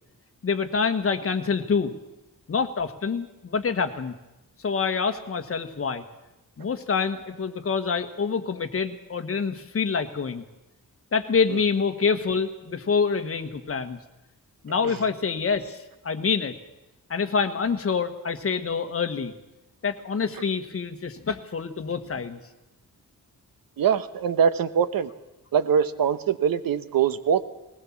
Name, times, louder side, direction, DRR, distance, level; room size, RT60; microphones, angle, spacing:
voice 1, 0.4-1.9 2.5-4.1 4.6-6.0 6.6-10.4 11.1-14.0 14.6-16.5 17.1-19.3 19.8-22.4, left 5 dB, 40° left, 7 dB, 1.4 m, -26 dB
voice 2, 23.8-25.1 25.5-27.4, right 7 dB, 85° right, 13 dB, 1.0 m, -23 dB
19.5 x 19.0 x 7.3 m, 0.96 s
wide cardioid pair, 155°, 34 cm